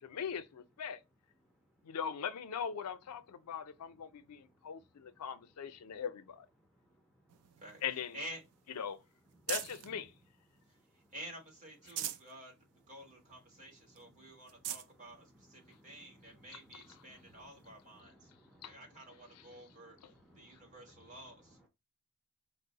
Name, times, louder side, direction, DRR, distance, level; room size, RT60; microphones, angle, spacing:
voice 1, 0.0-1.0 1.8-6.5 7.8-8.2 8.8-9.0 9.5-10.1 18.6-18.7, left 7 dB, 90° left, 0.4 m, -40 dB
sound 1, 7.3-10.0 10.5-11.2 11.6-12.3 12.8-12.9 13.2-13.3 14.0-14.1 14.4-14.9 15.7-15.8 17.6-17.7, right 10 dB, 80° right, 0.4 m, -43 dB
voice 2, 10.9-12.5 12.9-18.3 18.6-20.0 20.3-21.6, right 1 dB, 35° right, 1.4 m, -51 dB
voice 3, 15.4-16.5 16.9-18.9 19.3-21.2, equal, 5° right, 0.5 m, -63 dB
4.5 x 2.0 x 3.8 m
head